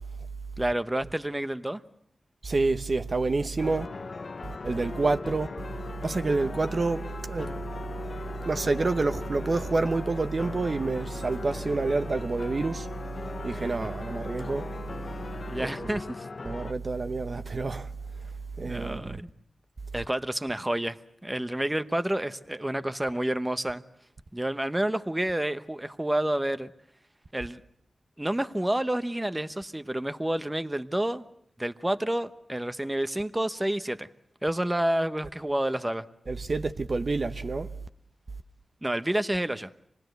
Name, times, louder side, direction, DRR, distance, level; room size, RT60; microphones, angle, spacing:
voice 1, 0.6-1.8 15.4-16.3 18.6-19.3 19.9-23.8 24.3-26.7 27.3-27.6 28.2-31.3 31.6-34.1 34.4-36.0 38.8-39.7, right 1 dB, 15° right, 0.9 m, -29 dB
voice 2, 2.4-3.9 4.6-5.5 6.0-7.5 8.4-12.9 13.4-14.7 15.6-15.9 16.4-17.9 18.6-19.2 36.3-37.7, right 3 dB, 55° right, 0.9 m, -28 dB
sound 1, 3.6-16.7, left 4 dB, 55° left, 1.0 m, -39 dB
26.5 x 19.5 x 7.9 m
cardioid pair, 60°, 0 cm